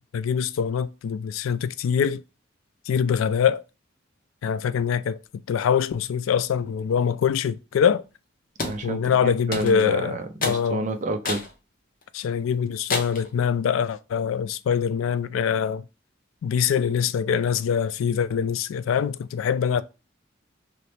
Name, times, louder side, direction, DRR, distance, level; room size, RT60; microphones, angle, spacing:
voice 1, 0.1-2.2 2.9-3.6 4.4-5.2 5.5-8.0 8.8-10.8 12.1-15.8 16.4-19.8, left 7 dB, 80° left, 0.3 m, -24 dB
sound 1, 8.6-8.8 9.5-9.9 10.4-10.6 11.2-11.5 12.0-12.1 12.9-13.3, left 3 dB, 45° left, 0.8 m, -29 dB
voice 2, 8.6-11.4, right 1 dB, 40° right, 0.6 m, -30 dB
3.2 x 3.0 x 3.2 m
head